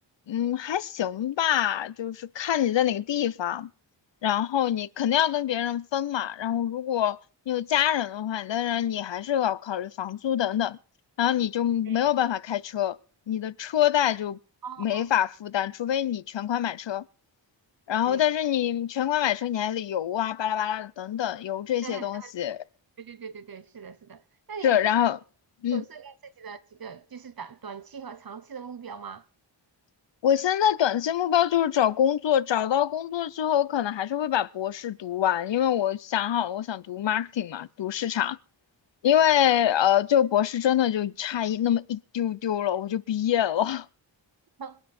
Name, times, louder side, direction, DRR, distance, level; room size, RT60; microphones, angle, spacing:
voice 1, 0.3-3.7 4.2-7.2 7.5-10.8 11.2-13.0 13.3-14.4 14.8-17.0 17.9-22.6 24.6-25.2 25.6-25.8 30.2-38.4 39.0-43.9, left 10 dB, 75° left, 0.7 m, -25 dB
voice 2, 11.8-12.3 14.6-15.1 18.0-18.2 21.8-22.3 23.0-24.2 24.5-24.8 25.7-29.3 44.6-44.8, right 6 dB, 50° right, 1.0 m, -41 dB
26.0 x 9.1 x 4.3 m
wide cardioid pair, 170°, 44 cm